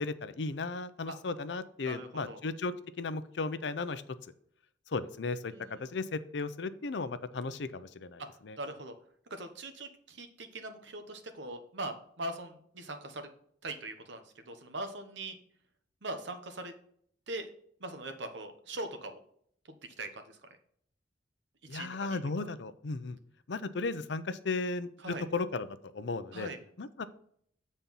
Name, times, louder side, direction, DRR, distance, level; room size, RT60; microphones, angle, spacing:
voice 1, 0.0-4.0 4.9-8.6 21.7-23.2 23.5-25.7 25.9-26.5 26.8-27.0, left 3 dB, 75° left, 13 dB, 0.6 m, -35 dB
voice 2, 1.8-2.4 5.5-5.8 8.6-8.9 9.3-13.3 13.6-15.4 16.0-16.7 17.3-17.5 17.8-19.2 20.0-20.4 21.7-22.5 25.0-25.2 26.3-26.6, right 2 dB, 80° right, 7 dB, 1.1 m, -41 dB
7.5 x 4.2 x 5.4 m, 0.64 s
head